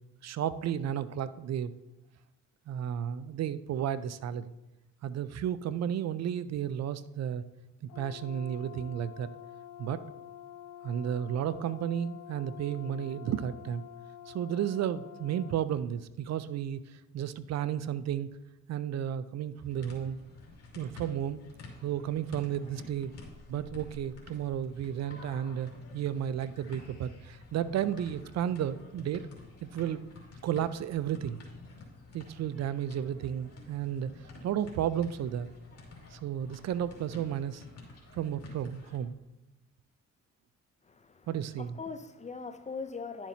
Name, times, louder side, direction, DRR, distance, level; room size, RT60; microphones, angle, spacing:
voice 1, 0.2-1.7 2.7-4.5 5.0-7.4 7.8-9.3 9.8-10.0 10.8-13.8 14.3-18.3 18.7-20.2 20.7-21.4 21.8-23.1 23.5-29.3 29.6-30.1 30.4-31.4 32.1-35.5 36.1-37.6 38.1-39.2 41.3-41.8, right 9 dB, 60° right, 15 dB, 0.5 m, -33 dB
Brass instrument, 7.9-15.6, left 11 dB, 80° left, 0.7 m, -48 dB
sound 1, 19.6-39.0, left 3 dB, 55° left, 2.5 m, -50 dB
voice 2, 40.9-41.3 41.6-43.3, left 4 dB, 25° left, 10 dB, 0.5 m, -41 dB
11.0 x 7.3 x 2.8 m, 0.95 s
cardioid pair, 90°, 30 cm